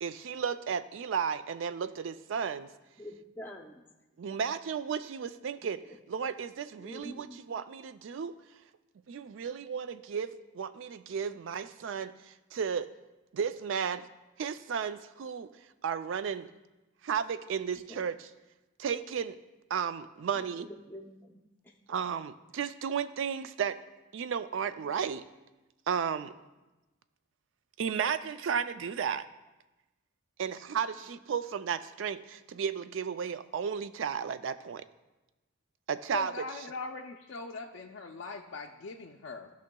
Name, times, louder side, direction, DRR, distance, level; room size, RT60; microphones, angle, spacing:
voice 1, 0.0-2.7 4.2-5.8 6.1-8.4 9.1-12.9 13.3-14.0 14.4-15.5 15.8-16.5 17.0-18.3 18.8-19.4 19.7-20.7 21.9-23.8 24.1-25.2 25.9-26.3 27.8-29.2 30.4-34.8 35.9-36.3, right 7 dB, 65° right, 12 dB, 0.3 m, -33 dB
voice 2, 3.0-3.8 6.8-7.4 17.9-18.1 20.4-21.4 24.8-24.9, left 1 dB, 10° left, 1 dB, 0.6 m, -46 dB
voice 3, 36.1-39.5, left 4 dB, 60° left, 1 dB, 0.4 m, -41 dB
13.5 x 5.6 x 2.2 m, 1.1 s
head